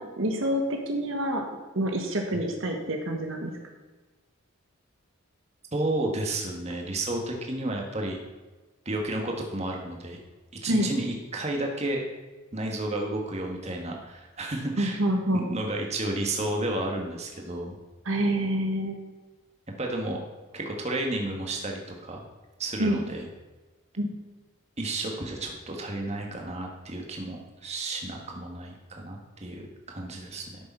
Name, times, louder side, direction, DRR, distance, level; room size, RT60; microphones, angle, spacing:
voice 1, 0.0-1.4 1.7-3.5 10.7-10.9 14.8-15.5 18.0-19.0 22.8-23.0 24.0-24.1, right 1 dB, 65° right, 3 dB, 1.4 m, -27 dB
voice 2, 5.7-8.2 8.8-10.2 10.6-12.0 12.5-15.0 15.3-17.8 19.8-20.2 20.5-22.2 22.6-23.3 24.8-30.4, right 2 dB, 30° right, 1 dB, 1.7 m, -32 dB
13.0 x 6.9 x 5.6 m, 1.2 s
head